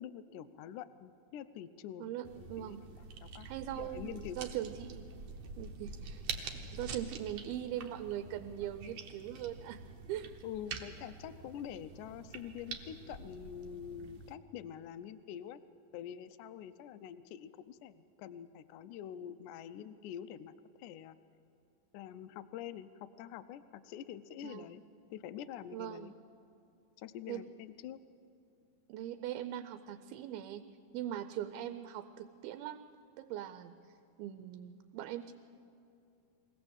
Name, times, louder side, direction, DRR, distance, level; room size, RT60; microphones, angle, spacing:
voice 1, 0.0-3.5 3.8-4.4 10.4-15.6 15.9-20.5 20.8-21.2 21.9-24.8 25.1-26.1 27.0-28.0, left 10 dB, 90° left, 12 dB, 1.8 m, -46 dB
voice 2, 2.0-2.8 3.5-5.1 5.6-6.2 6.7-9.8 10.1-10.3 24.4-24.7 25.7-26.1 27.3-27.4 28.9-30.6 30.9-32.8 33.2-35.3, right 11 dB, 85° right, 11 dB, 2.5 m, -41 dB
sound 1, 2.2-14.3, right 4 dB, 65° right, 1.8 m, -46 dB
22.5 x 17.5 x 7.9 m, 2.6 s
omnidirectional pair, 4.4 m